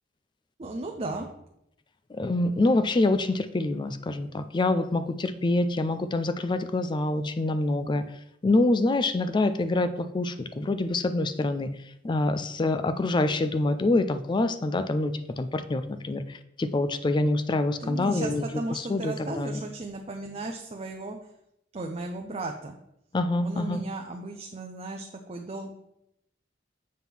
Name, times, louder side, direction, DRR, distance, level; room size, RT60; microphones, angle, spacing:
voice 1, 0.6-1.3 17.8-21.2 21.7-22.8 23.4-25.7, right 2 dB, 35° right, 3 dB, 0.6 m, -35 dB
voice 2, 2.1-8.0 8.4-11.7 12.0-18.4 18.7-19.6 23.1-23.8, left 2 dB, 25° left, 11 dB, 0.4 m, -26 dB
7.5 x 3.6 x 6.0 m, 0.82 s
head